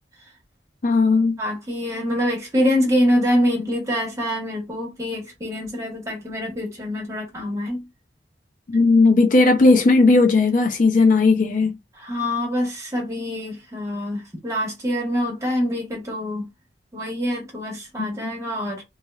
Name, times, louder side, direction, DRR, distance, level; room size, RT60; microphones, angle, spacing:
voice 1, 0.8-1.4 8.7-11.7, left 3 dB, 45° left, 0.4 m, -16 dB
voice 2, 1.4-7.8 11.9-16.5 16.9-18.8, equal, 15° right, 1.3 m, -25 dB
3.0 x 2.7 x 2.3 m
head